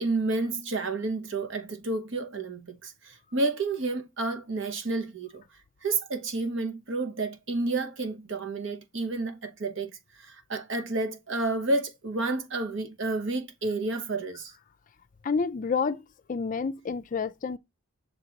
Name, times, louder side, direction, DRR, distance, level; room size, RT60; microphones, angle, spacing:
voice 1, 0.0-5.4 5.8-9.9 10.2-14.5, right 3 dB, 65° right, 1.0 m, -30 dB
voice 2, 15.2-16.0 16.3-17.6, left 5 dB, 40° left, 0.4 m, -29 dB
6.6 x 2.9 x 5.0 m
head